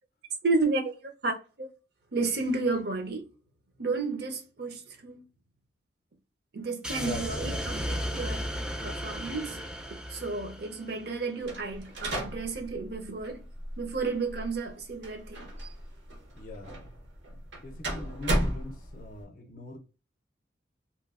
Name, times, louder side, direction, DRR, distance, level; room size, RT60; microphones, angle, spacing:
voice 1, 0.4-1.7 2.1-3.3 3.8-5.2 6.5-8.5 8.8-9.6 10.1-13.4 13.8-15.5, right 3 dB, 60° right, 0.6 m, -32 dB
sound 1, 6.8-11.2, equal, 5° right, 0.4 m, -35 dB
voice 2, 6.9-7.5 16.4-16.7 17.6-19.8, left 2 dB, 45° left, 0.5 m, -42 dB
sound 2, 11.4-19.2, right 1 dB, 80° right, 1.0 m, -35 dB
2.9 x 2.6 x 2.4 m
head